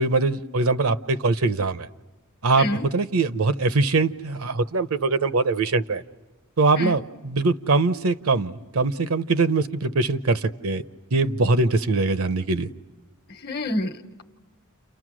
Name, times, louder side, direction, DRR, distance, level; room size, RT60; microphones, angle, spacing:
voice 1, 0.0-1.9 2.4-6.0 6.6-10.8 11.1-12.7, right 3 dB, 75° right, 13 dB, 0.8 m, -22 dB
voice 2, 13.4-14.2, left 1 dB, 50° left, 8 dB, 1.1 m, -28 dB
29.5 x 29.5 x 6.3 m, 1.2 s
head